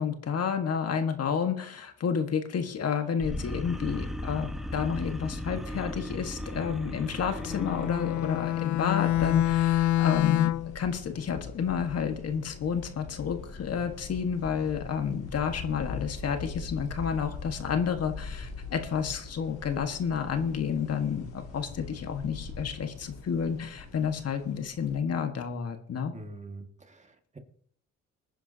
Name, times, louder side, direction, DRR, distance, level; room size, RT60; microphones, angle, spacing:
voice 1, 0.0-26.1, left 7 dB, 55° left, 6 dB, 1.6 m, -30 dB
sound 1, 3.2-9.5, equal, ahead, 1.3 m, -37 dB
Bowed string instrument, 7.4-10.8, left 14 dB, 70° left, 0.5 m, -26 dB
sound 2, 9.1-25.0, left 4 dB, 90° left, 3.6 m, -42 dB
voice 2, 26.1-27.4, right 2 dB, 25° right, 5 dB, 1.9 m, -45 dB
21.0 x 10.0 x 2.8 m, 0.63 s
cardioid pair, 90°, 30 cm